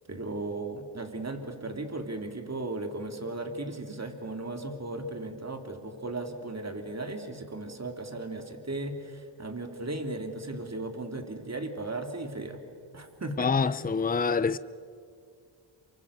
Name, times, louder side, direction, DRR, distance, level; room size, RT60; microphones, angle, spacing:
voice 1, 0.1-12.6 12.9-13.9, right 2 dB, 35° right, 3.3 m, -36 dB
voice 2, 13.4-14.6, left 5 dB, 20° left, 0.7 m, -26 dB
28.5 x 23.5 x 6.9 m
cardioid pair, 60°, 48 cm